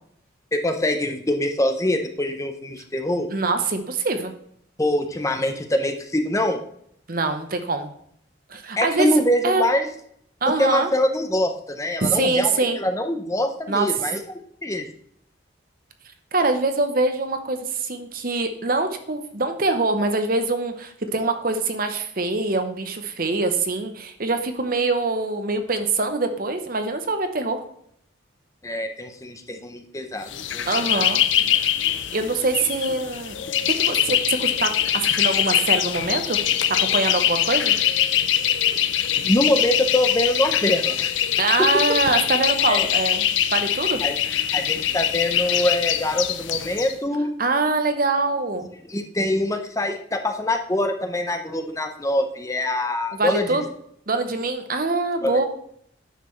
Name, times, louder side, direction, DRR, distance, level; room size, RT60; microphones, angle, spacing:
voice 1, 0.5-3.3 4.8-6.6 8.8-9.9 10.6-14.2 14.6-14.9 28.6-31.1 39.2-41.1 42.7-42.9 44.0-44.1 44.5-47.3 48.9-53.7 55.2-55.4, left 1 dB, 15° left, 6 dB, 0.6 m, -24 dB
voice 2, 3.3-4.3 7.1-7.9 8.5-9.7 10.4-10.9 12.0-12.8 13.7-13.9 16.3-27.6 30.7-31.2 31.6-31.7 32.1-33.4 33.7-36.4 36.7-37.7 41.4-43.2 43.5-44.0 47.4-48.7 53.1-53.6 54.1-55.4, right 3 dB, 45° right, 7 dB, 0.8 m, -24 dB
sound 1, 30.3-46.9, left 11 dB, 70° left, 0.6 m, -23 dB
9.2 x 6.7 x 3.1 m, 0.68 s
head